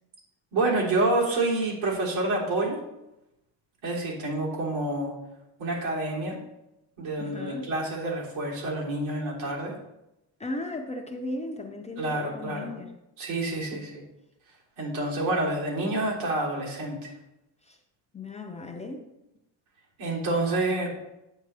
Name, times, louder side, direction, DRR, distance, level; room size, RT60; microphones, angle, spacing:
voice 1, 0.5-2.8 3.8-5.1 5.6-6.4 7.0-9.7 12.0-12.7 13.2-13.9 14.8-17.1 20.0-20.9, right 2 dB, 85° right, -4 dB, 3.7 m, -28 dB
voice 2, 7.2-7.7 10.4-12.9 13.7-13.9 17.7-17.8 18.1-19.1, left 2 dB, 15° left, 3 dB, 0.4 m, -36 dB
9.2 x 8.1 x 3.3 m, 0.89 s
cardioid pair, 175°, 45 cm